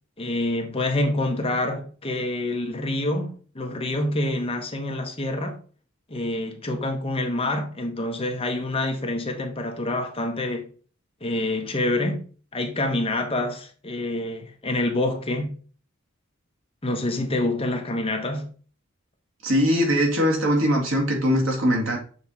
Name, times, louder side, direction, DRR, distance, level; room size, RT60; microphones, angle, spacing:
voice 1, 0.2-5.6 6.1-10.7 11.2-12.2 12.5-15.5 16.8-18.5, left 1 dB, 30° left, 1.0 m, -27 dB
voice 2, 19.4-22.0, equal, 90° right, 2.0 m, -21 dB
6.6 x 3.5 x 4.1 m
head